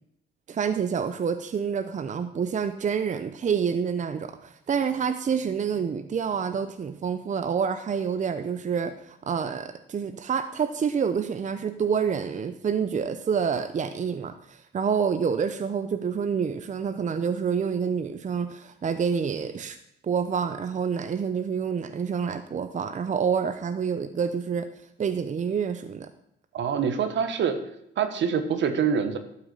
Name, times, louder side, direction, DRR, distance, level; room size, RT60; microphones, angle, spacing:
voice 1, 0.5-19.8 20.0-24.7 25.0-26.1, right 6 dB, 40° right, 9 dB, 0.7 m, -28 dB
voice 2, 26.5-27.6 28.0-29.2, right 7 dB, 70° right, 8 dB, 1.4 m, -25 dB
12.0 x 5.8 x 6.5 m, 0.77 s
cardioid pair, 90°, 20 cm